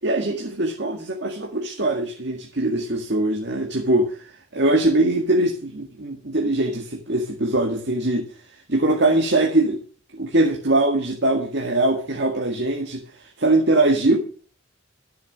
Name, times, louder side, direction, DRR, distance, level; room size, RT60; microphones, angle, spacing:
voice 1, 0.0-4.2 4.5-8.3 8.7-9.8 10.1-14.2, right 2 dB, 65° right, 2 dB, 2.0 m, -22 dB
13.5 x 7.4 x 6.4 m, 0.40 s
head